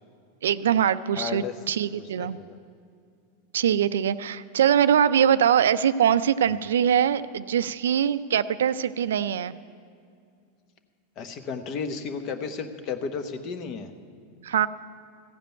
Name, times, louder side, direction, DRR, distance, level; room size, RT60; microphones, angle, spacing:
voice 1, 0.4-2.4 3.5-9.5 14.4-14.7, right 9 dB, 85° right, 15 dB, 0.3 m, -22 dB
voice 2, 1.2-1.5 2.2-2.6 6.5-6.6 11.2-13.9, left 5 dB, 45° left, 9 dB, 1.0 m, -33 dB
15.0 x 5.2 x 9.0 m, 2.3 s
hypercardioid pair, 110°, 0 cm